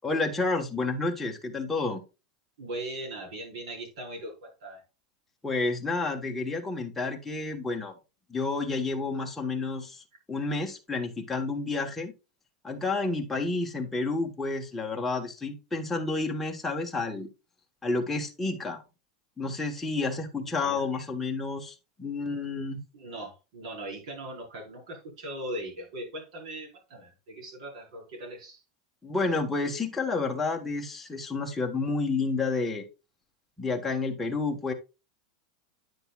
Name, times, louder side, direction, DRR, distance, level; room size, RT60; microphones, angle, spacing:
voice 1, 0.0-2.0 5.4-7.9 8.3-12.1 12.6-17.3 17.8-18.8 19.4-22.8 29.0-32.8 33.6-34.7, left 3 dB, 5° left, 1 dB, 1.2 m, -30 dB
voice 2, 2.6-4.8 20.6-20.9 22.9-28.6, right 1 dB, 70° right, 0 dB, 4.6 m, -39 dB
9.3 x 6.6 x 2.3 m, 0.28 s
supercardioid pair, 160°, 3 cm